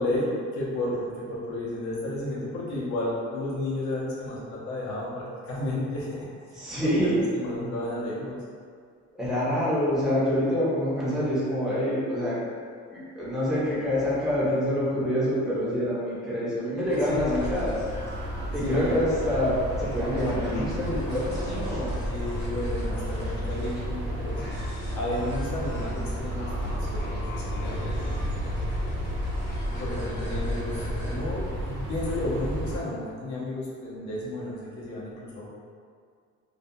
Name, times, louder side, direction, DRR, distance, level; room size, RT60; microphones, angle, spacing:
voice 1, 0.0-6.5 6.8-8.4 17.1-17.9 18.6-19.2 22.1-24.6 24.9-28.6 29.7-35.5, left 1 dB, 75° left, -6 dB, 0.7 m, -32 dB
voice 2, 6.5-7.2 9.2-12.4 12.9-17.7 18.5-21.9 24.4-24.7, equal, ahead, -10 dB, 0.5 m, -26 dB
sound 1, 16.8-32.8, right 1 dB, 50° right, 0.5 m, -33 dB
sound 2, 16.9-31.1, left 1 dB, 55° left, 1.2 m, -36 dB
2.5 x 2.2 x 2.6 m, 2.1 s
cardioid pair, 175°, 29 cm